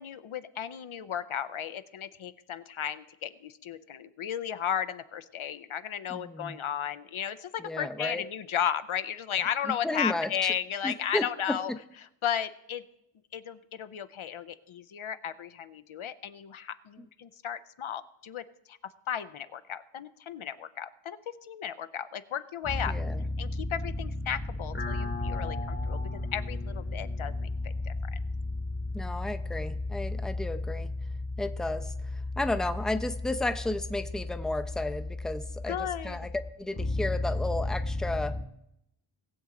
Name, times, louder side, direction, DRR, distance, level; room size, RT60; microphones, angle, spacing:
voice 1, 0.0-11.7 12.2-12.8 13.3-23.0 23.4-26.0 26.3-28.2 35.7-36.2, left 9 dB, 70° left, 12 dB, 0.7 m, -34 dB
voice 2, 6.1-6.6 7.6-8.2 9.8-10.5 10.8-11.6 17.0-17.1 22.9-23.2 28.9-30.9 31.4-36.3 36.6-38.4, left 2 dB, ahead, 9 dB, 0.6 m, -33 dB
sound 1, 22.6-38.4, left 2 dB, 25° left, 1.0 m, -34 dB
19.5 x 7.2 x 3.8 m, 0.81 s
wide cardioid pair, 45°, 49 cm